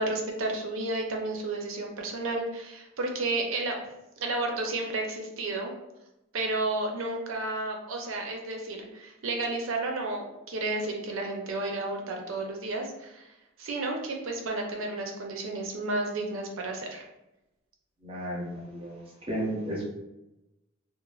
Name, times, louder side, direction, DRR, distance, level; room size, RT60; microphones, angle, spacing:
voice 1, 0.0-3.8 4.2-5.7 6.3-13.3 13.6-17.0, right 2 dB, 75° right, 2 dB, 0.5 m, -32 dB
voice 2, 18.0-19.8, right 1 dB, 25° right, -4 dB, 0.6 m, -34 dB
3.1 x 2.0 x 2.3 m, 0.93 s
head